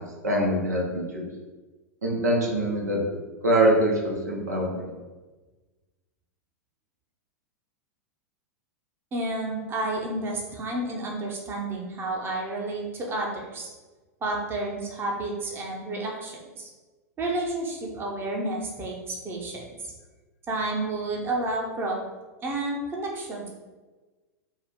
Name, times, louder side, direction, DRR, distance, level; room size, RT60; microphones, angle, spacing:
voice 1, 0.2-1.3 2.0-3.0 3.4-4.8, right 1 dB, 80° right, -1 dB, 1.0 m, -24 dB
voice 2, 9.1-13.7 14.2-16.7 17.2-19.9 20.5-22.0 22.4-23.5, right 2 dB, 25° right, -1 dB, 0.9 m, -31 dB
4.5 x 2.4 x 3.6 m, 1.2 s
hypercardioid pair, 95°, 9 cm